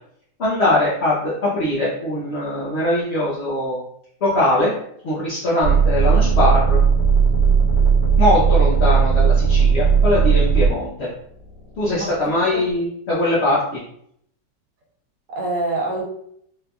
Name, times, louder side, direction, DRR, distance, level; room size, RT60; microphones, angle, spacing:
voice 1, 0.4-3.8 4.2-4.7 5.0-6.8 8.2-11.1 11.8-13.8, left 1 dB, 50° left, -8 dB, 0.8 m, -21 dB
sound 1, 5.6-10.7 11.4-12.1, right 6 dB, 60° right, 1.5 m, -16 dB
voice 2, 11.9-12.6 15.3-16.0, right 2 dB, 75° right, -1 dB, 1.6 m, -26 dB
4.3 x 2.7 x 2.3 m, 0.69 s
omnidirectional pair, 1.9 m